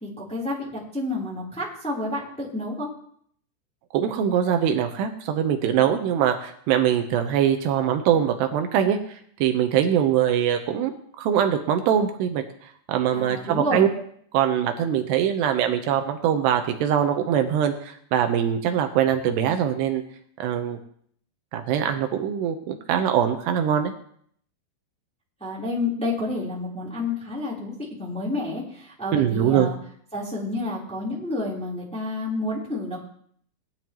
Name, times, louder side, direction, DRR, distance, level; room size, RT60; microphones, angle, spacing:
voice 1, 0.0-2.9 13.1-13.8 25.4-29.8 30.1-33.0, left 2 dB, ahead, -6 dB, 2.8 m, -29 dB
voice 2, 3.9-10.9 11.2-12.4 12.9-13.9 14.3-20.0 20.4-20.8 21.5-23.9 29.1-29.7, right 9 dB, 80° right, 6 dB, 2.9 m, -22 dB
18.5 x 11.0 x 3.1 m, 0.63 s
omnidirectional pair, 4.9 m